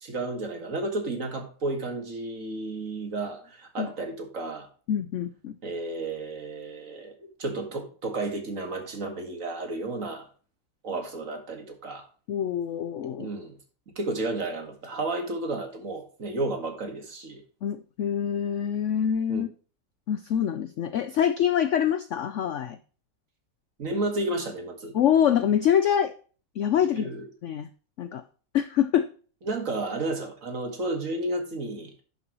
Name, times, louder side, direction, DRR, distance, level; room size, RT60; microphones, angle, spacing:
voice 1, 0.0-4.7 5.6-7.1 7.4-10.3 10.8-12.1 13.2-13.6 14.0-17.4 19.3-19.4 23.8-25.0 26.8-27.2 29.4-32.0, right 2 dB, 50° right, 4 dB, 2.1 m, -32 dB
voice 2, 4.9-5.6 12.3-13.3 17.6-19.5 20.1-22.8 24.9-26.1 26.6-27.1 27.4-27.7 28.0-28.2 28.5-29.1, left 9 dB, 70° left, 12 dB, 0.7 m, -25 dB
10.5 x 6.9 x 3.0 m, 0.39 s
omnidirectional pair, 1.9 m